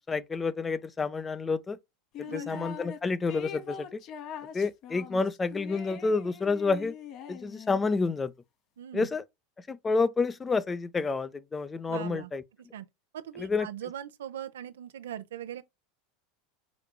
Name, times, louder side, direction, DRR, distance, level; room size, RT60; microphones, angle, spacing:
voice 1, 0.1-1.8 2.2-4.0 4.5-6.9 7.3-8.3 8.9-9.2 9.7-12.4 13.4-13.7, left 4 dB, 20° left, 0.6 m, -29 dB
sound 1, 2.1-3.0 3.3-7.9, left 8 dB, 50° left, 1.1 m, -42 dB
voice 2, 2.2-2.7 8.8-9.1 11.9-12.3 12.6-12.9 13.1-15.6, right 10 dB, 80° right, 0.7 m, -40 dB
5.1 x 4.7 x 2.2 m
hypercardioid pair, 95°, 0 cm